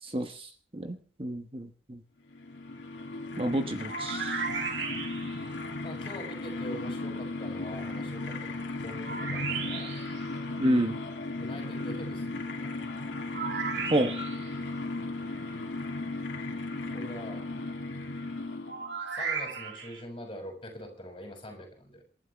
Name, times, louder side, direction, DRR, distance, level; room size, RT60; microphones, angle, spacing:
voice 1, 0.0-2.0 3.4-4.4 10.6-11.0 13.9-14.1, right 1 dB, 30° right, 5 dB, 1.1 m, -29 dB
sound 1, 2.3-19.0, left 2 dB, 75° left, 2.7 m, -36 dB
sound 2, 3.9-5.5 9.0-10.2 13.3-14.5 18.7-20.0, right 5 dB, 65° right, 2.5 m, -35 dB
voice 2, 5.8-10.0 11.4-12.7 16.9-17.4 19.1-22.0, equal, 25° left, 2 dB, 6.2 m, -44 dB
28.0 x 11.5 x 3.5 m, 0.43 s
head